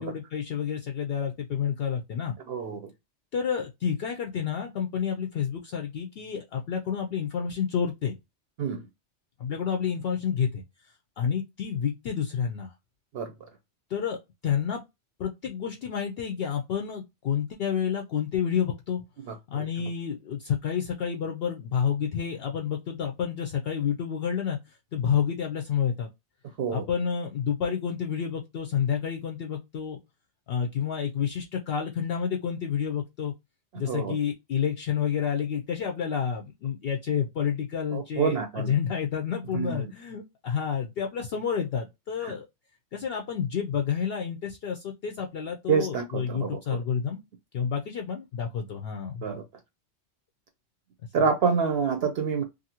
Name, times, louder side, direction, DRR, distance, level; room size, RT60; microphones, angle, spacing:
voice 1, 0.0-2.3 3.3-8.1 9.4-10.6 11.2-12.7 13.9-14.8 15.2-19.0 19.5-24.6 24.9-26.1 26.7-30.0 30.5-33.3 33.8-42.5 42.9-47.2 47.5-49.2, left 7 dB, 65° left, 0.7 m, -29 dB
voice 2, 2.5-2.8 8.6-8.8 13.1-13.3 19.3-19.7 26.6-26.8 33.8-34.1 37.9-38.7 39.5-39.9 42.2-42.3 45.7-46.8 49.2-49.4 51.1-52.4, right 6 dB, 65° right, 0.8 m, -27 dB
2.6 x 2.6 x 2.7 m
omnidirectional pair, 1.2 m